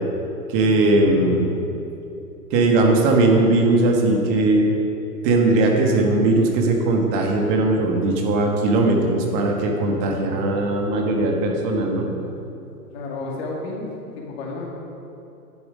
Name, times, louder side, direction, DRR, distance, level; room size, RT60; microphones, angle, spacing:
voice 1, 0.5-1.5 2.5-4.7 5.2-12.0, right 2 dB, 35° right, 1 dB, 1.3 m, -19 dB
voice 2, 12.9-13.9 14.2-14.7, left 3 dB, 40° left, -2 dB, 2.2 m, -31 dB
10.5 x 6.8 x 5.1 m, 2.8 s
hypercardioid pair, 130°, 47 cm